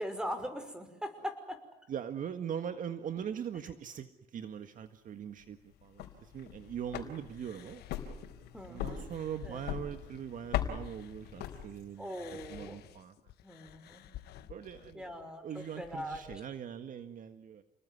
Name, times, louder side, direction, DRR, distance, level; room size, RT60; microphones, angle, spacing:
voice 1, 0.0-1.6 8.5-9.1 9.4-9.8 12.0-12.8 13.4-14.0 14.9-16.4, equal, 5° right, 9 dB, 5.5 m, -41 dB
voice 2, 1.9-7.8 8.7-13.2 14.4-15.1 15.4-17.6, right 8 dB, 50° right, 9 dB, 1.7 m, -41 dB
sound 1, 5.8-12.1, left 11 dB, 90° left, 4.1 m, -40 dB
sound 2, 7.3-11.7 12.0-16.5, left 13 dB, 75° left, 1.6 m, -54 dB
30.0 x 20.5 x 9.8 m, 0.81 s
cardioid pair, 110°, 17 cm